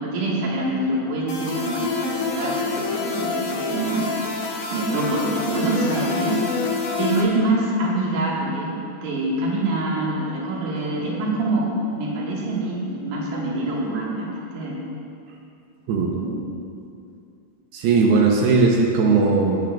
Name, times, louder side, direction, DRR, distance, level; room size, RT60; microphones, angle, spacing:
voice 1, 0.0-4.1 4.7-6.4 7.0-8.8 9.0-11.7 11.9-14.8 16.1-16.3, right 2 dB, 60° right, -4 dB, 2.9 m, -25 dB
sound 1, 1.3-7.2, left 4 dB, 75° left, 1.5 m, -27 dB
voice 2, 17.7-19.6, right 4 dB, 85° right, -1 dB, 2.7 m, -18 dB
18.5 x 9.2 x 2.4 m, 2.5 s
omnidirectional pair, 4.6 m